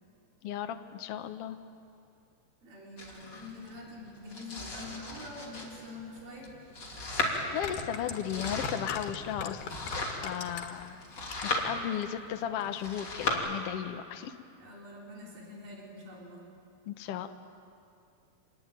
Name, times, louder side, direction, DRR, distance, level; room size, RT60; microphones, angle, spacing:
voice 1, 0.4-1.6 7.3-9.9 10.2-11.0 11.4-14.3 16.9-17.3, left 10 dB, 70° left, 8 dB, 1.5 m, -35 dB
voice 2, 2.6-6.6 14.6-16.5, left 2 dB, 80° right, -3 dB, 5.6 m, -46 dB
Domestic sounds home sounds, 3.0-13.3, left 2 dB, 30° left, 3.5 m, -37 dB
sound 1, 6.4-6.5 7.4-10.9 11.2-11.7 12.0-12.1, left 5 dB, 90° left, 3.6 m, -39 dB
27.0 x 21.0 x 9.1 m, 2.5 s
omnidirectional pair, 4.1 m